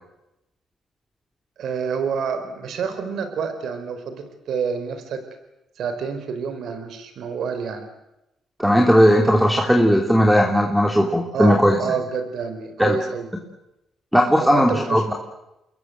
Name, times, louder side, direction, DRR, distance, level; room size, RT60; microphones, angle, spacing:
voice 1, 1.6-5.2 5.8-7.9 11.3-13.3 14.4-15.0, right 6 dB, 70° right, 8 dB, 4.5 m, -28 dB
voice 2, 8.6-11.8 12.8-13.0 14.1-15.1, equal, ahead, 2 dB, 3.3 m, -17 dB
28.5 x 21.5 x 8.0 m, 0.90 s
cardioid pair, 90°, 0 cm